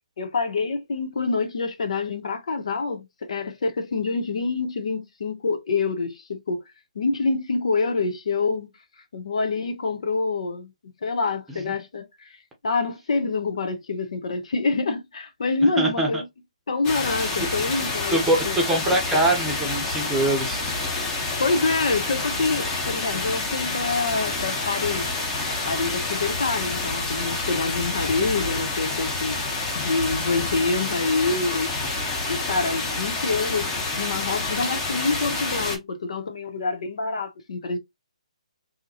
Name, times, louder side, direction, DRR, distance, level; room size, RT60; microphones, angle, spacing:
voice 1, 0.2-6.6 6.9-8.7 9.1-10.7 11.0-12.4 12.6-16.3 16.7-19.0 21.4-25.2 25.6-29.4 29.7-31.8 32.3-37.8, left 4 dB, 60° left, 0.8 m, -26 dB
voice 2, 15.6-16.2 18.1-20.6, right 1 dB, 10° right, 0.9 m, -23 dB
sound 1, 16.8-35.8, left 2 dB, 20° left, 1.0 m, -28 dB
3.7 x 2.8 x 2.8 m
figure-of-eight pair, 145°, 4 cm